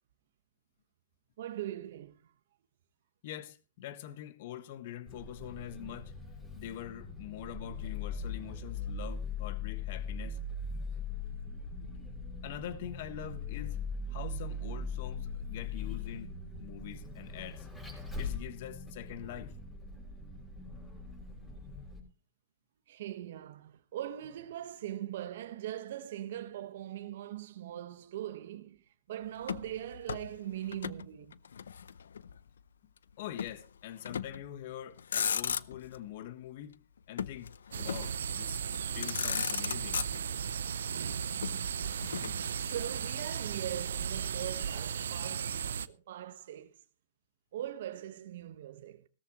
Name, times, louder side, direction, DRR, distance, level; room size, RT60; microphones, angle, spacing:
voice 1, 1.4-2.2 22.9-31.3 41.3-46.7 47.5-49.1, right 12 dB, 65° right, 1.2 m, -41 dB
voice 2, 3.2-6.1 6.5-10.4 12.4-13.8 14.1-16.3 16.6-17.7 18.2-19.6 33.2-36.8 37.1-38.6 38.9-40.1, left 11 dB, 55° left, 1.4 m, -44 dB
Vehicle, 5.1-22.0, left 3 dB, 10° left, 5.8 m, -40 dB
Motor vehicle (road), 29.4-31.1 31.3-32.4 33.4-33.6 34.1-34.5 34.9-36.0 37.2-38.2 38.7-38.8 39.0-40.5 41.4-43.1, left 7 dB, 85° left, 0.5 m, -36 dB
sound 1, 37.7-45.9, right 7 dB, 80° right, 0.6 m, -36 dB
17.5 x 14.0 x 3.1 m
hypercardioid pair, 125°, 0 cm